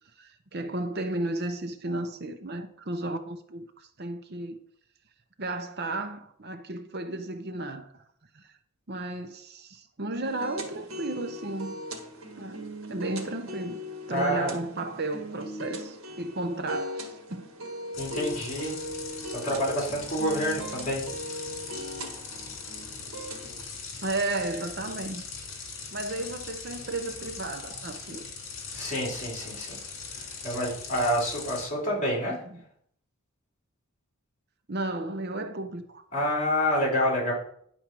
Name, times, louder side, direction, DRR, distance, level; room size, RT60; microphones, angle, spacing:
voice 1, 0.2-4.6 5.4-8.0 8.3-8.4 8.9-11.8 12.4-13.8 14.1-17.4 24.0-25.5 25.9-28.3 32.5-32.6 34.7-36.0, right 2 dB, 45° right, 0.8 m, -34 dB
sound 1, 10.2-23.6, equal, 70° right, 1.6 m, -39 dB
voice 2, 14.1-14.5 18.0-18.7 19.4-21.0 28.7-29.8 30.2-32.4 36.1-37.3, equal, 35° left, 3.7 m, -28 dB
sound 2, 17.9-31.6, left 5 dB, 60° left, 2.6 m, -40 dB
10.0 x 4.5 x 6.1 m
head